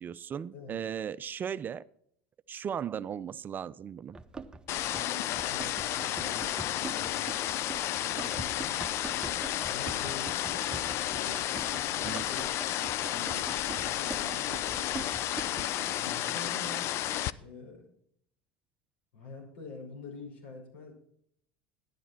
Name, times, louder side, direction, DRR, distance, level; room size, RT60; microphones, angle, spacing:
voice 1, 0.0-1.8 2.5-4.2 12.0-12.3, right 8 dB, 35° right, 17 dB, 0.5 m, -37 dB
voice 2, 0.5-0.9 4.9-7.3 8.0-8.8 9.6-12.6 13.1-15.3 16.0-17.0 17.4-17.9 19.1-20.9, left 3 dB, 85° left, 0 dB, 5.6 m, -47 dB
Run, 4.1-15.8, right 3 dB, 15° right, 1.1 m, -44 dB
sound 1, 4.7-17.3, left 13 dB, 55° left, 0.5 m, -32 dB
11.5 x 10.0 x 4.5 m, 0.68 s
hypercardioid pair, 80°, 5 cm